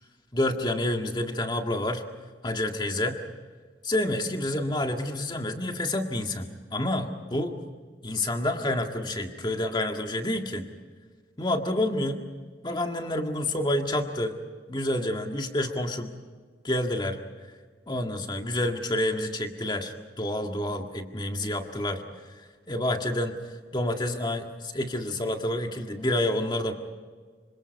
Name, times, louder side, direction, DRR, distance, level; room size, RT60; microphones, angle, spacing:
voice 1, 0.3-2.0 2.4-3.2 3.8-7.6 8.0-10.6 11.4-12.2 12.6-14.4 14.7-16.1 16.6-17.2 17.9-22.0 22.7-23.4 23.7-26.7, left 1 dB, 25° left, 4 dB, 1.8 m, -28 dB
26.0 x 25.0 x 5.3 m, 1.5 s
head